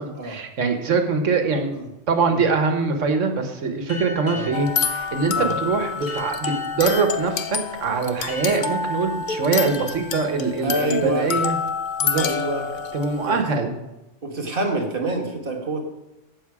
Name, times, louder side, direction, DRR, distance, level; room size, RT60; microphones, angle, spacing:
voice 1, 0.0-1.7 2.1-11.6 12.0-12.2 12.9-13.7, right 4 dB, 90° right, 6 dB, 1.5 m, -23 dB
sound 1, 3.9-11.2, left 1 dB, 20° left, 3.5 m, -39 dB
sound 2, 4.5-13.4, left 6 dB, 50° left, 0.6 m, -28 dB
voice 2, 10.6-11.3 12.1-12.7 13.3-13.6 14.2-15.8, right 1 dB, 45° right, 2 dB, 1.7 m, -27 dB
14.5 x 5.7 x 4.8 m, 1.0 s
omnidirectional pair, 1.2 m